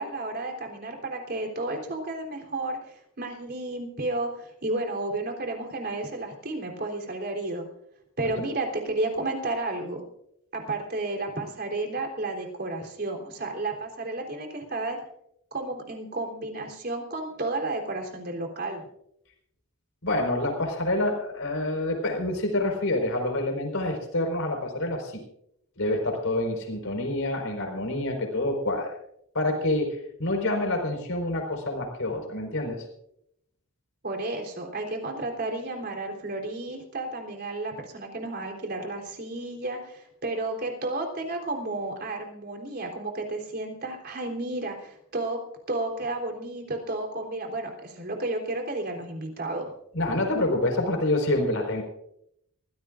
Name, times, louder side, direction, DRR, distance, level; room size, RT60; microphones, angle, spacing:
voice 1, 0.0-7.6 8.2-10.0 10.5-15.0 15.5-18.8 34.0-45.4 45.7-49.7, right 2 dB, 50° right, 2 dB, 3.7 m, -32 dB
voice 2, 20.0-25.2 25.8-28.9 29.3-29.9 30.2-32.8 49.9-51.8, left 1 dB, 70° left, 3 dB, 4.8 m, -27 dB
23.5 x 16.5 x 2.6 m, 0.75 s
head